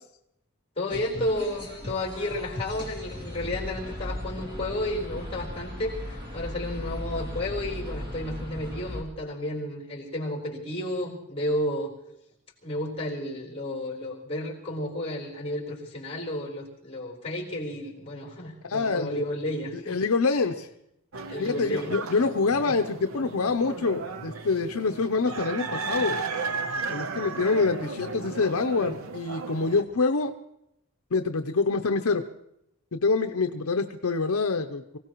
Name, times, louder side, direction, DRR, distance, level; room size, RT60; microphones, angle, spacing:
voice 1, 0.8-11.9 12.6-20.0 21.3-22.0 22.6-22.7, left 1 dB, 25° left, -1 dB, 4.1 m, -32 dB
sound 1, 0.9-9.0, left 1 dB, 20° right, 2.5 m, -37 dB
voice 2, 18.7-19.2 19.9-20.7 21.4-26.2 26.9-30.3 31.1-32.2 32.9-35.0, left 4 dB, 75° left, 6 dB, 0.7 m, -26 dB
sound 2, 21.1-29.8, right 4 dB, 70° right, 0.9 m, -35 dB
24.0 x 16.5 x 3.1 m, 0.79 s
head